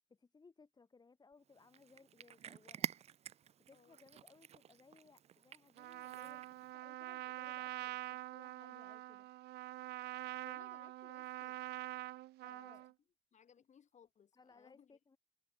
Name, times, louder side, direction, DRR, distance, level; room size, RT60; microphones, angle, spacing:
voice 1, 0.1-2.9 3.7-9.3 12.4-12.9 14.3-15.2, left 4 dB, 25° left, 4.6 m, -64 dB
Cat, 1.5-6.7, right 9 dB, 40° right, 0.5 m, -48 dB
Trumpet, 5.8-12.9, right 17 dB, 75° right, 0.8 m, -45 dB
voice 2, 10.4-11.6 12.5-12.8 13.3-14.9, left 8 dB, 45° left, 7.1 m, -65 dB
cardioid pair, 110°, 17 cm